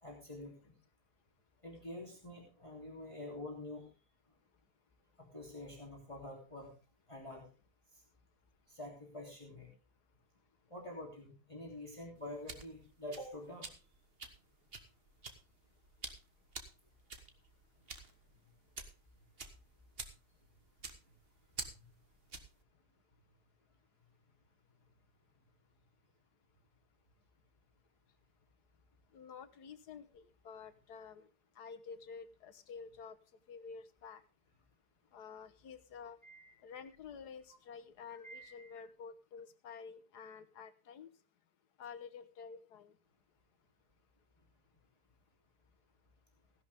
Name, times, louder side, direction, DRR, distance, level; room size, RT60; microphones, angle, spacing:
voice 1, 0.0-0.7 1.6-3.9 5.2-6.7 7.1-7.4 8.7-9.7 10.7-13.7 21.8-21.9 36.2-36.5 38.1-38.8, left 1 dB, 20° left, -1 dB, 3.1 m, -47 dB
sound 1, 12.2-22.6, right 4 dB, 40° right, 1.5 m, -49 dB
voice 2, 29.1-34.2 35.1-36.2 36.6-41.2 41.8-43.0, left 6 dB, 75° left, 12 dB, 1.6 m, -50 dB
16.0 x 11.0 x 3.5 m, 0.32 s
omnidirectional pair, 1.7 m